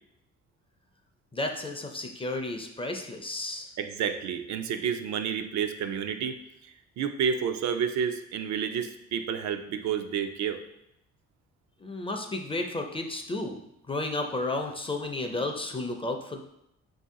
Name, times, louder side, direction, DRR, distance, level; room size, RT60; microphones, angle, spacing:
voice 1, 1.3-3.7 11.8-13.6 13.9-16.4, left 2 dB, 20° left, 4 dB, 0.4 m, -32 dB
voice 2, 3.8-6.4 7.0-10.6, right 7 dB, 65° right, 7 dB, 0.4 m, -30 dB
3.9 x 2.7 x 3.6 m, 0.81 s
cardioid pair, 90°, 30 cm